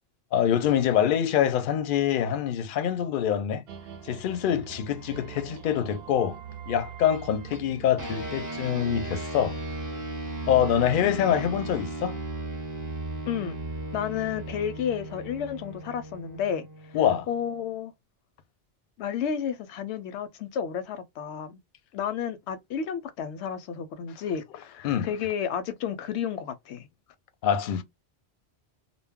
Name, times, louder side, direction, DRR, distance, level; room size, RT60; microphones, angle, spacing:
voice 1, 0.3-3.6 4.0-6.4 6.7-9.6 10.5-12.2 16.9-17.3 24.8-25.1 27.4-27.8, left 9 dB, 60° left, 0.6 m, -25 dB
sound 1, 3.7-9.3, right 8 dB, 70° right, 0.8 m, -43 dB
sound 2, 8.0-17.7, right 2 dB, 20° right, 0.6 m, -36 dB
voice 2, 13.3-13.6 13.9-17.0 17.3-17.9 19.0-21.6 21.9-26.9, left 8 dB, 90° left, 0.9 m, -32 dB
2.2 x 2.0 x 3.5 m
omnidirectional pair, 1.1 m